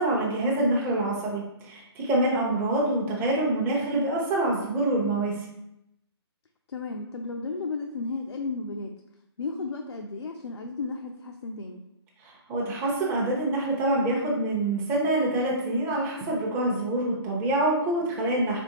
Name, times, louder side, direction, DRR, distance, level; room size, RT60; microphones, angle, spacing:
voice 1, 0.0-5.4 12.2-18.6, right 1 dB, 15° right, -4 dB, 0.7 m, -26 dB
voice 2, 6.7-8.9 9.4-11.8, left 3 dB, 75° left, 3 dB, 0.5 m, -34 dB
4.2 x 3.5 x 2.9 m, 0.83 s
figure-of-eight pair, 145°, 14 cm